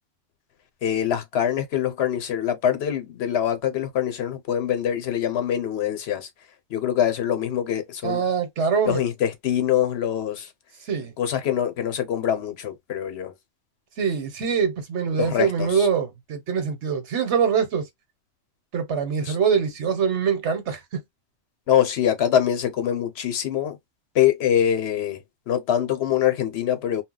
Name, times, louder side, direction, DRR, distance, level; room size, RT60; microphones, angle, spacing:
voice 1, 0.8-6.3 6.7-8.2 8.9-10.5 11.2-13.3 15.2-15.9 19.2-19.4 21.7-23.8 24.1-27.0, left 10 dB, 70° left, 0.9 m, -24 dB
voice 2, 8.0-9.0 10.9-11.1 14.0-17.9 18.7-21.0, right 6 dB, 90° right, 1.2 m, -24 dB
2.3 x 2.0 x 3.8 m
omnidirectional pair, 1.1 m